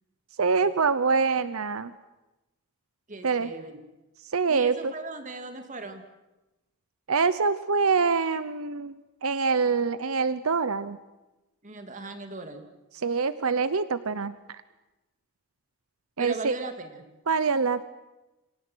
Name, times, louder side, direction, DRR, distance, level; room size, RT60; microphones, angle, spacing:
voice 1, 0.4-1.9 3.2-3.5 4.2-4.9 7.1-11.0 13.0-14.6 16.2-16.5 17.3-17.9, right 5 dB, 80° right, 14 dB, 0.8 m, -25 dB
voice 2, 3.1-3.8 4.5-6.1 11.6-12.7 16.2-17.1, right 2 dB, 35° right, 6 dB, 2.4 m, -38 dB
28.0 x 26.5 x 6.3 m, 1.0 s
head